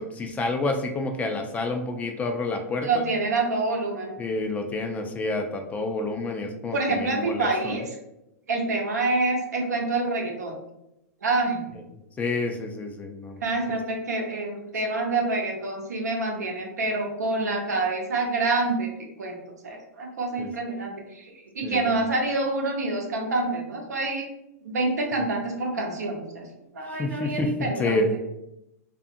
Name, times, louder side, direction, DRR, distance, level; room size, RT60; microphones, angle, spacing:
voice 1, 0.0-3.0 4.2-7.8 12.2-13.4 20.4-20.5 21.6-22.0 26.9-28.1, left 2 dB, 15° left, 5 dB, 0.3 m, -29 dB
voice 2, 2.8-4.1 6.7-8.0 8.5-10.5 11.2-11.6 13.4-18.9 19.2-19.4 19.6-24.3 24.6-26.5 26.7-28.0, right 3 dB, 90° right, 1 dB, 0.7 m, -27 dB
2.6 x 2.5 x 2.5 m, 0.86 s
hypercardioid pair, 125°, 9 cm